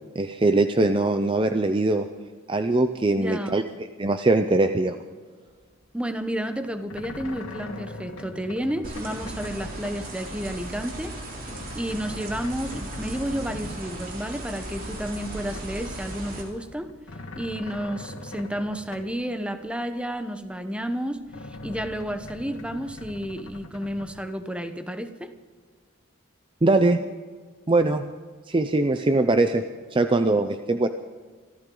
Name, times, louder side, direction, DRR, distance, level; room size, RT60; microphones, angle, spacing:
voice 1, 0.1-2.1 2.5-3.6 4.0-5.0 26.6-27.0 27.7-28.1 28.5-29.6 29.9-30.9, right 2 dB, 25° right, 8 dB, 0.5 m, -21 dB
voice 2, 3.1-3.6 5.9-11.1 11.7-16.9 17.4-25.3, equal, 5° right, 9 dB, 0.9 m, -31 dB
sound 1, 5.5-5.9 6.1-10.1 10.3-10.7 11.0-14.5 14.9-16.0 16.4-19.2 19.7-19.8 20.4-20.5 21.1-24.3, left 2 dB, 90° left, 2.1 m, -42 dB
sound 2, 8.8-16.4, right 1 dB, 45° right, 3.1 m, -37 dB
25.5 x 14.0 x 3.9 m, 1.5 s
head